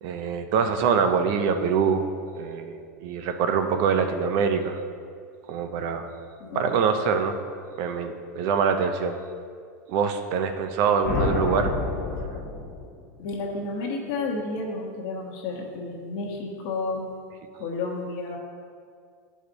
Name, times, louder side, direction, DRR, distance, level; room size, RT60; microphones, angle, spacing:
voice 1, 0.0-2.0 2.4-4.8 5.5-6.1 6.5-7.4 7.8-9.2 9.9-11.8, right 6 dB, 50° right, 7 dB, 0.7 m, -24 dB
voice 2, 6.4-6.7 11.1-11.2 13.2-17.1 17.6-18.4, left 3 dB, 50° left, -1 dB, 1.2 m, -31 dB
sound 1, 11.0-13.2, left 3 dB, 80° left, 1.4 m, -28 dB
10.5 x 5.0 x 4.0 m, 2.2 s
supercardioid pair, 145°, 9 cm